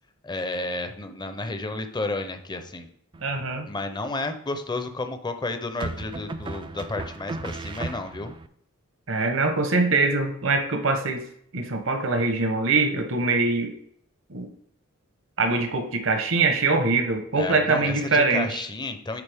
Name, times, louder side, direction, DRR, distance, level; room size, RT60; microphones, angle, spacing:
voice 1, 0.2-2.9 3.7-8.3 17.4-19.2, left 2 dB, 20° left, 8 dB, 0.6 m, -31 dB
sound 1, 3.1-3.7 5.8-8.5, right 3 dB, 25° right, 0.3 m, -35 dB
voice 2, 3.2-3.7 9.1-11.3 11.5-13.7 14.3-14.5 15.4-18.6, right 3 dB, 65° right, 5 dB, 1.0 m, -23 dB
9.8 x 4.0 x 3.5 m, 0.67 s
head